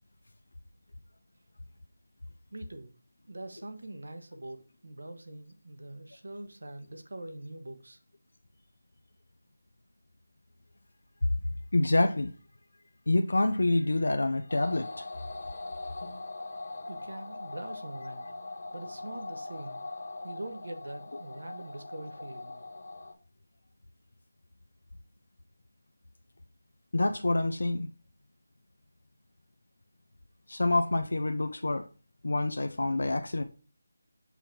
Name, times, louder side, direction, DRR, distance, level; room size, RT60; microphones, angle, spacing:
voice 1, 2.5-2.9 3.2-8.0 16.9-18.3 18.7-19.8 20.2-22.6, right 1 dB, 80° right, 1.3 m, -43 dB
voice 2, 11.7-12.3 13.1-15.0 26.9-27.9 30.5-31.9 32.2-33.4, left 2 dB, 75° left, 0.6 m, -27 dB
sound 1, 14.5-23.1, left 2 dB, 40° left, 1.0 m, -41 dB
6.8 x 5.8 x 2.9 m
figure-of-eight pair, 180°, 0 cm